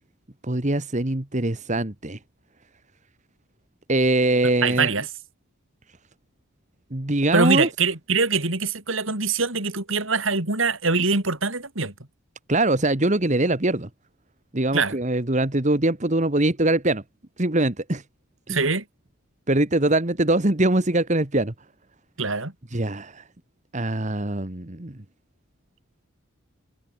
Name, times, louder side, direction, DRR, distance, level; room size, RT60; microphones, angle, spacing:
voice 1, 0.4-2.2 3.9-4.9 6.9-7.7 12.5-13.9 14.5-17.0 17.4-18.0 18.5-18.6 19.5-21.5 22.7-23.2 23.7-25.0, right 2 dB, 35° right, 1.6 m, -22 dB
voice 2, 4.6-5.1 7.3-11.9 14.7-15.0 18.5-18.8 22.2-22.5, right 4 dB, 70° right, 3.8 m, -23 dB
head